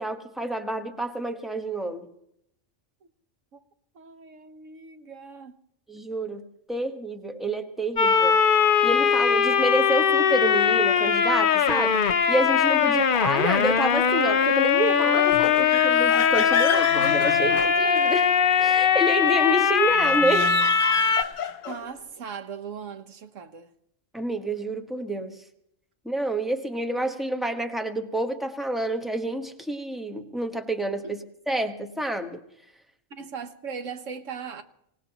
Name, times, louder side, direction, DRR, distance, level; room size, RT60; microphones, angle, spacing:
voice 1, 0.0-2.1 5.9-8.4 8.8-12.0 12.3-18.3 18.6-20.6 24.1-25.4 26.0-31.2 31.5-32.4, right 1 dB, ahead, 1.1 m, -28 dB
voice 2, 3.9-5.6 12.8-13.0 21.7-23.7 31.0-31.1 33.1-34.6, right 6 dB, 80° right, 1.4 m, -39 dB
sound 1, 8.0-21.2, left 7 dB, 50° left, 0.8 m, -21 dB
sound 2, 15.2-18.3 19.9-21.9, left 7 dB, 75° left, 1.2 m, -31 dB
25.5 x 18.0 x 3.0 m
omnidirectional pair, 1.3 m